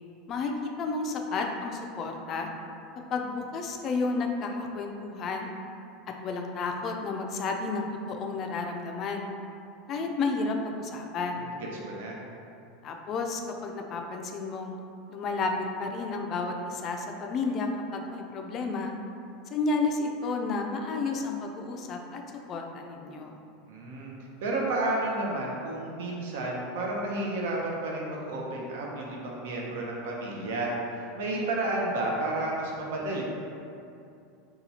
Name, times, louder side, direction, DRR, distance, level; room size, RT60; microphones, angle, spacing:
voice 1, 0.3-2.5 3.1-5.6 6.2-9.3 9.9-11.4 12.8-14.8 15.1-15.5 15.8-18.9 19.5-22.2 22.5-23.3, left 3 dB, 40° left, 3 dB, 0.3 m, -31 dB
voice 2, 11.9-12.2 23.7-24.2 24.4-33.2, right 2 dB, 80° right, -2 dB, 0.6 m, -31 dB
2.8 x 2.3 x 4.1 m, 2.6 s
supercardioid pair, 130°, 0 cm